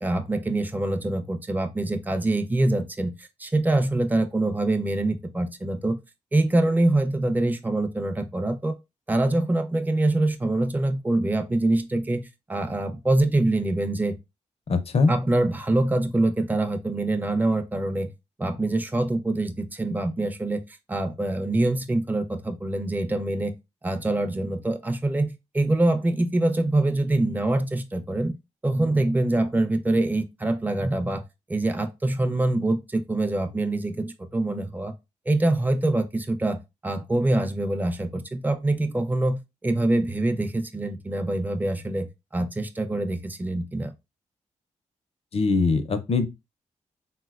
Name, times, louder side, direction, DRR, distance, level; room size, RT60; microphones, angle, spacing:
voice 1, 0.0-6.0 6.3-8.8 9.1-14.2 15.1-18.1 18.4-23.5 23.8-28.3 28.6-31.2 31.5-34.9 35.3-36.6 36.8-42.1 42.3-43.9, right 2 dB, 15° right, 0.4 m, -24 dB
voice 2, 14.7-15.1 45.3-46.3, left 4 dB, 50° left, 0.5 m, -22 dB
3.8 x 2.1 x 2.3 m
cardioid pair, 75°, 13 cm